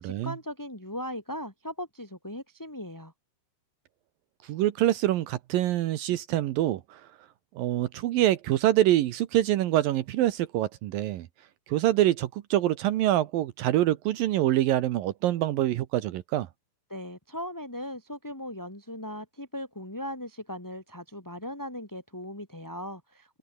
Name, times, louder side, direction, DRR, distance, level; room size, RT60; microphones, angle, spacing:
voice 1, 0.0-3.1 16.9-23.4, left 1 dB, 5° left, 4.4 m, -38 dB
voice 2, 4.4-7.0 7.6-11.3 11.7-16.5, right 14 dB, 75° right, 2.6 m, -25 dB
open air
omnidirectional pair, 4.4 m